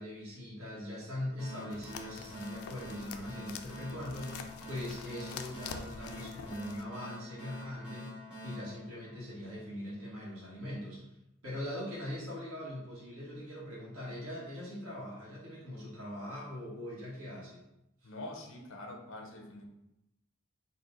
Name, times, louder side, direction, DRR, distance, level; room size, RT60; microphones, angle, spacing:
voice 1, 0.0-11.0 11.4-17.6 18.0-18.1, left 1 dB, 85° right, -7 dB, 1.5 m, -41 dB
sound 1, 1.4-9.7, left 1 dB, 5° right, 1.2 m, -47 dB
sound 2, 1.7-6.8, left 6 dB, 90° left, 0.4 m, -46 dB
voice 2, 18.0-19.7, left 1 dB, 65° left, 2 dB, 0.8 m, -45 dB
4.3 x 2.5 x 3.8 m, 0.87 s
head